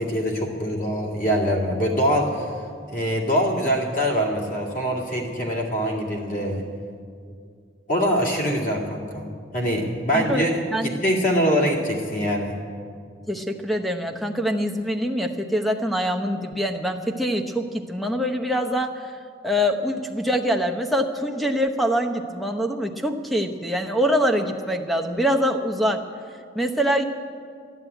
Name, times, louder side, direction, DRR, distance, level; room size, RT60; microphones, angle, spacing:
voice 1, 0.0-2.5 2.9-6.6 7.9-9.3 9.5-12.6, equal, 45° left, -1 dB, 2.2 m, -24 dB
voice 2, 10.1-11.0 13.3-19.0 19.4-26.0 26.5-27.0, equal, ahead, 5 dB, 0.8 m, -24 dB
13.5 x 11.0 x 9.0 m, 2.2 s
head